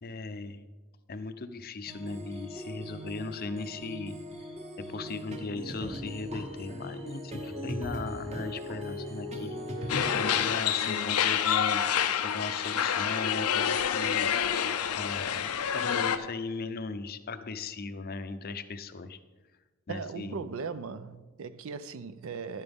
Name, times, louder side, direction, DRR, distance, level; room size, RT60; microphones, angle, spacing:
voice 1, 0.0-0.7 1.1-4.2 4.9-11.8 12.2-14.3 15.0-19.2 19.9-20.5, left 3 dB, 45° left, 0.5 m, -38 dB
sound 1, 1.9-10.3, equal, 30° right, 1.0 m, -39 dB
sound 2, 9.9-16.2, left 8 dB, 85° left, 0.6 m, -28 dB
voice 2, 19.9-22.6, right 5 dB, 65° right, 0.5 m, -38 dB
11.0 x 11.0 x 3.5 m
head